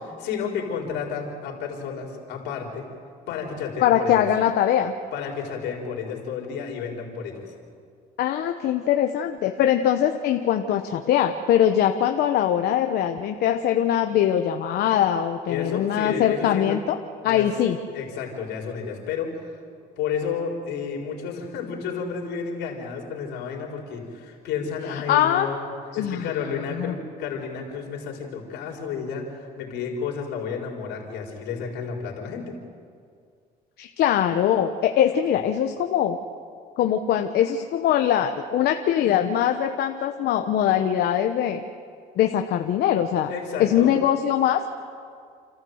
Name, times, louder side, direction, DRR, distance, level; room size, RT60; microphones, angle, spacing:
voice 1, 0.2-2.9 3.3-4.3 5.1-7.5 15.4-16.8 17.2-17.5 17.9-19.4 20.0-25.7 25.9-32.5 43.3-43.9, left 6 dB, 90° left, 0 dB, 4.6 m, -31 dB
voice 2, 3.8-4.9 8.2-17.0 17.2-17.8 24.9-25.5 26.0-26.3 26.7-26.9 33.8-36.2 36.8-41.6 42.2-43.3 43.6-44.6, left 10 dB, 70° left, 5 dB, 1.1 m, -22 dB
30.0 x 13.5 x 8.0 m, 2.2 s
cardioid pair, 110°, 17 cm